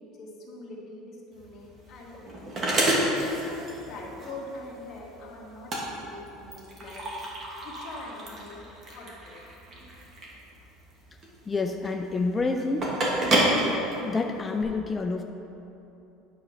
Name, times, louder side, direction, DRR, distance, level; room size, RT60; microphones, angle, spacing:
voice 1, 0.0-2.7 3.1-7.1 7.6-8.6 8.9-9.4, left 2 dB, 40° left, -3 dB, 1.6 m, -43 dB
sound 1, 1.3-14.6, right 1 dB, 30° right, 1.5 m, -30 dB
voice 2, 11.5-12.9 14.0-15.2, left 3 dB, 15° left, 4 dB, 0.3 m, -28 dB
9.2 x 4.2 x 5.7 m, 2.9 s
cardioid pair, 140°, 0 cm